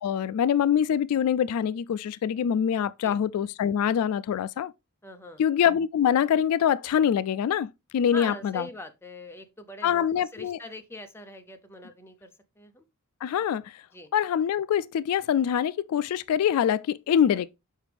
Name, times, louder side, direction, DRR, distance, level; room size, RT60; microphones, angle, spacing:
voice 1, 0.0-4.7 5.4-8.7 9.8-10.6 13.2-13.8 14.1-17.5, left 9 dB, 75° left, 0.3 m, -24 dB
voice 2, 5.0-5.4 8.1-12.3 12.6-12.8 13.9-14.1 17.3-17.4, left 1 dB, 10° left, 0.7 m, -42 dB
6.4 x 4.9 x 3.4 m
head